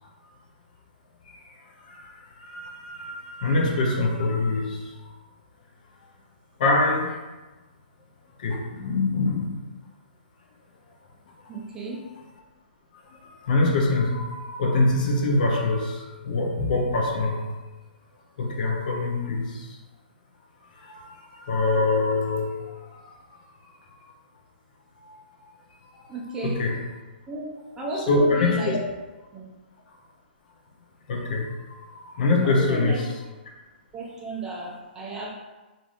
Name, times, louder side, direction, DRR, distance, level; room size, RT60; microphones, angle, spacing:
voice 1, 1.8-5.0 6.6-7.2 8.4-9.6 13.1-17.5 18.4-19.8 20.8-23.1 25.0-25.4 26.0-26.1 26.4-26.8 27.9-28.8 31.1-33.1, left 2 dB, 50° left, 1 dB, 0.6 m, -25 dB
voice 2, 11.5-12.0 26.1-26.6 27.3-27.5 27.8-28.7 29.3-29.4 32.4-33.0 33.9-35.3, right 2 dB, 10° right, -4 dB, 0.5 m, -33 dB
3.2 x 2.5 x 2.5 m, 1.2 s
hypercardioid pair, 150°, 6 cm